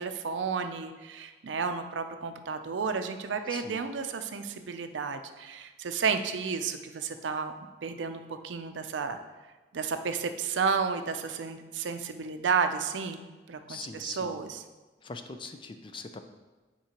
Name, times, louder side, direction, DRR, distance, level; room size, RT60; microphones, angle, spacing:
voice 1, 0.0-7.5 7.8-9.2 9.7-13.2 13.5-14.6, right 5 dB, 80° right, 8 dB, 0.5 m, -32 dB
voice 2, 3.5-3.8 13.7-14.5 15.0-16.2, left 4 dB, 25° left, 8 dB, 0.4 m, -42 dB
8.6 x 4.6 x 2.9 m, 1.2 s
head